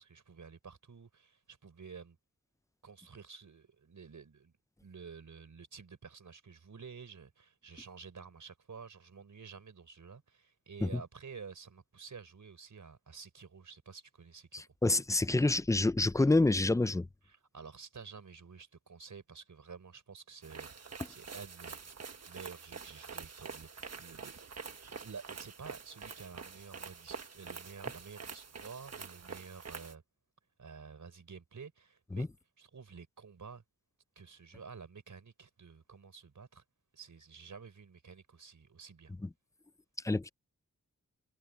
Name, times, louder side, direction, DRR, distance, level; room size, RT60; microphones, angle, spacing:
voice 1, 0.0-2.2 2.8-4.5 4.8-14.6 17.3-21.9 22.3-24.3 24.6-30.0 30.6-32.3 32.6-33.6 34.1-36.6 36.9-39.1, right 5 dB, 80° right, 5.2 m, -51 dB
voice 2, 14.5-17.1 32.1-32.3 40.0-40.3, left 2 dB, 10° left, 0.4 m, -28 dB
sound 1, 20.4-29.9, right 5 dB, 55° right, 1.4 m, -46 dB
wide cardioid pair, 105°, 30 cm